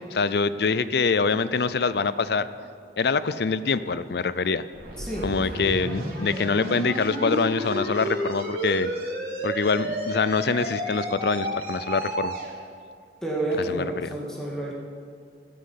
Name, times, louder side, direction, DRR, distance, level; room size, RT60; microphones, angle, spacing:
voice 1, 0.0-2.5 3.0-4.6 5.2-8.9 9.4-12.3 13.7-14.1, left 4 dB, 60° left, 15 dB, 0.5 m, -25 dB
sound 1, 4.7-12.5, right 1 dB, 50° right, 3.7 m, -31 dB
voice 2, 5.0-5.7 13.2-14.7, right 1 dB, 5° left, -3 dB, 2.2 m, -30 dB
13.0 x 12.0 x 5.8 m, 2.3 s
head